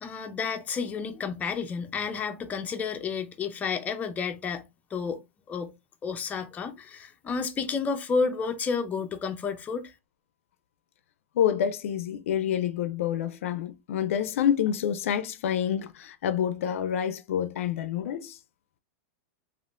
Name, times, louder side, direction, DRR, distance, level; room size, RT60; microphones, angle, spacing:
voice 1, 0.0-5.7 6.0-9.9, left 5 dB, 20° left, 0.5 m, -31 dB
voice 2, 11.4-18.4, left 9 dB, 85° left, 0.4 m, -28 dB
3.4 x 2.4 x 2.4 m
supercardioid pair, 130°, 7 cm